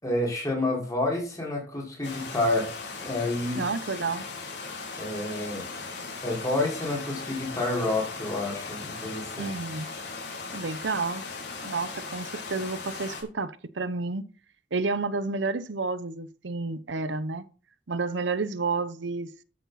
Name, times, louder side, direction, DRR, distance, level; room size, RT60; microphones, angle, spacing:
voice 1, 0.0-2.7 3.0-3.6 5.0-5.7 6.2-9.5, left 2 dB, 20° left, 5.4 m, -29 dB
sound 1, 2.0-13.2, left 4 dB, 70° left, 4.5 m, -38 dB
voice 2, 3.6-4.2 9.4-9.9 10.5-11.2 11.6-14.2 14.7-17.4 17.9-19.3, right 4 dB, 85° right, 0.8 m, -30 dB
13.0 x 8.1 x 4.2 m
head